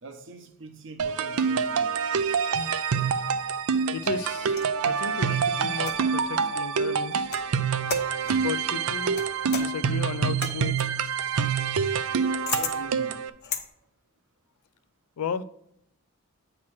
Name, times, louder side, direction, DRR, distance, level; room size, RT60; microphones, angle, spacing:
voice 1, 0.0-2.0 12.5-13.3, right 2 dB, 55° right, 0.8 m, -43 dB
sound 1, 1.0-13.3, right 6 dB, 75° right, 0.4 m, -26 dB
sound 2, 3.5-4.8 5.8-6.3 7.1-7.5 7.9-8.5 9.2-13.7, left 7 dB, 45° left, 0.7 m, -37 dB
voice 2, 3.9-4.5 4.8-7.3 8.3-9.2 9.5-10.9 15.2-15.4, left 6 dB, 80° left, 0.4 m, -34 dB
8.6 x 3.0 x 5.9 m
head